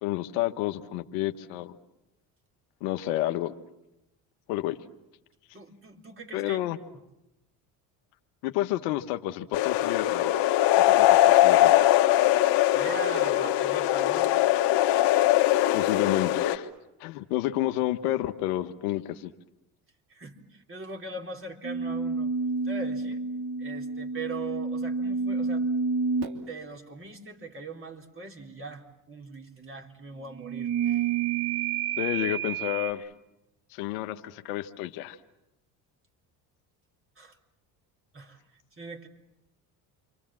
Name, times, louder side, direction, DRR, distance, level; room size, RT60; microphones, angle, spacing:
voice 1, 0.0-1.8 2.8-3.5 4.5-4.8 6.3-6.8 8.4-10.3 10.8-11.8 15.7-16.7 17.0-19.3 32.0-33.1 33.7-35.2, left 14 dB, 85° left, 8 dB, 1.3 m, -30 dB
voice 2, 5.5-6.6 12.7-14.3 20.1-22.3 22.6-23.2 23.6-25.7 26.5-30.7 37.2-37.4 38.1-39.1, right 3 dB, 30° right, 2 dB, 3.9 m, -40 dB
sound 1, 9.5-16.6, left 14 dB, 65° left, 1.6 m, -21 dB
sound 2, 21.6-26.5 30.3-32.9, right 5 dB, 60° right, 3.0 m, -29 dB
29.0 x 24.5 x 7.5 m, 0.92 s
supercardioid pair, 75°, 44 cm